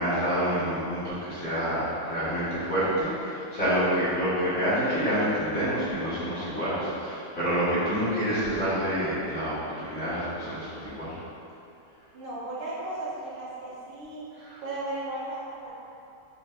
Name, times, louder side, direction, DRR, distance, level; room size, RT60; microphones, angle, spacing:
voice 1, 0.0-11.2 14.4-14.6, equal, 40° left, -14 dB, 1.6 m, -28 dB
voice 2, 12.1-14.3 14.6-15.7, right 2 dB, 85° right, -7 dB, 1.8 m, -35 dB
5.4 x 3.3 x 2.4 m, 2.8 s
omnidirectional pair, 2.3 m